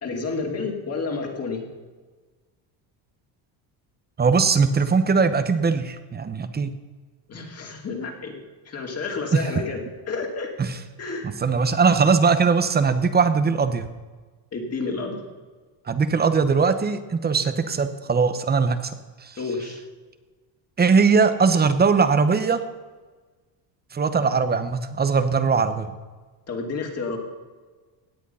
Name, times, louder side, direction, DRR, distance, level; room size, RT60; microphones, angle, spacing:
voice 1, 0.0-1.6 7.3-10.5 11.0-11.3 14.5-15.2 19.4-19.8 26.5-27.2, left 4 dB, 30° left, 1 dB, 2.6 m, -30 dB
voice 2, 4.2-6.7 9.3-9.5 10.6-10.8 11.2-13.9 15.9-18.9 19.2-19.4 20.8-22.6 23.9-25.9, right 5 dB, 20° right, 11 dB, 0.9 m, -20 dB
17.0 x 9.2 x 5.6 m, 1.4 s
cardioid pair, 140°, 48 cm